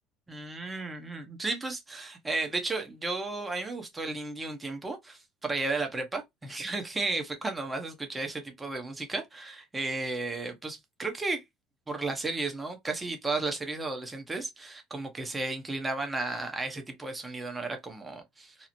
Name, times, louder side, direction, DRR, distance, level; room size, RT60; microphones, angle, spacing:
voice 1, 0.3-11.4 11.9-18.7, right 3 dB, 20° right, 0.7 m, -34 dB
2.8 x 2.0 x 2.5 m
supercardioid pair, 80°, 0 cm